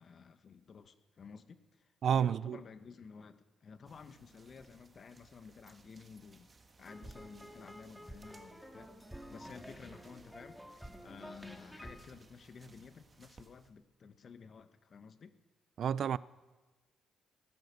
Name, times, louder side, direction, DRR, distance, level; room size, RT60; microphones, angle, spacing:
voice 1, 0.0-6.5 6.8-15.3, left 5 dB, 50° left, 1.1 m, -53 dB
voice 2, 2.0-2.6 15.8-16.2, right 8 dB, 60° right, 0.4 m, -30 dB
sound 1, 3.8-13.7, right 3 dB, 30° right, 1.5 m, -63 dB
sound 2, 6.9-13.2, equal, ahead, 1.8 m, -51 dB
18.5 x 10.5 x 6.7 m
cardioid pair, 90°, 0 cm